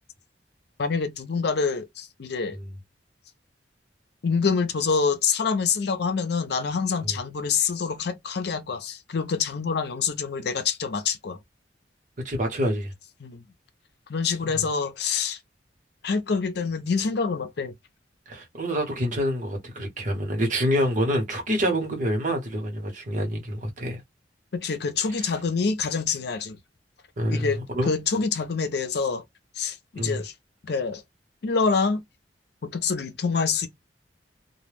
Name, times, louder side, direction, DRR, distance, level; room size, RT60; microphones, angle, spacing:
voice 1, 0.8-2.6 4.2-11.4 13.2-13.4 14.1-15.4 16.0-17.7 24.5-26.6 27.3-27.6 27.9-29.2 29.6-30.3 30.6-31.0 31.4-32.0 32.6-33.7, left 5 dB, 65° left, 0.5 m, -26 dB
voice 2, 12.2-12.9 14.4-14.6 18.3-24.0 25.2-25.3 27.2-27.9 30.0-30.2, equal, 45° right, 0.9 m, -27 dB
2.2 x 2.1 x 3.2 m
head